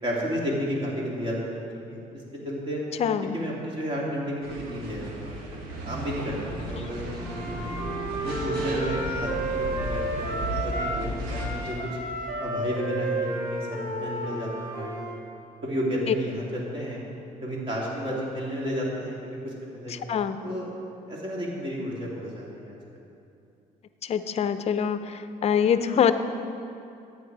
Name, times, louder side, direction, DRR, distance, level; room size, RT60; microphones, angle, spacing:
voice 1, 0.0-1.4 1.9-2.0 2.4-2.8 3.3-7.7 8.2-11.8 12.4-15.2 15.6-17.0 17.4-20.1 20.4-20.7 21.1-22.8, equal, 35° right, -4 dB, 2.6 m, -32 dB
voice 2, 3.0-3.4 20.1-20.4 24.1-25.0 25.4-26.1, left 8 dB, 45° left, 10 dB, 0.6 m, -23 dB
sound 1, 4.4-11.7, equal, 85° right, 1.4 m, -35 dB
Wind instrument woodwind instrument, 7.2-11.0 11.3-15.2, right 2 dB, 55° right, 2.9 m, -32 dB
10.5 x 8.6 x 4.7 m, 2.6 s
cardioid pair, 110°, 15 cm